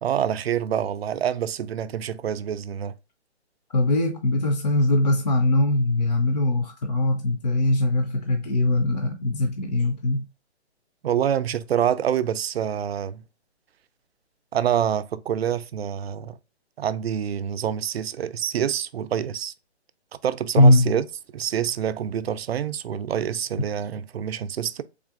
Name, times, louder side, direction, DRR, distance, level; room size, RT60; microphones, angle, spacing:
voice 1, 0.0-2.9 11.0-13.2 14.5-16.4 16.8-19.5 20.2-21.1 21.3-24.8, right 9 dB, 65° right, 0.5 m, -26 dB
voice 2, 3.7-10.3 20.6-21.0, left 1 dB, 40° left, 0.4 m, -21 dB
3.7 x 3.6 x 2.4 m
hypercardioid pair, 165°, 34 cm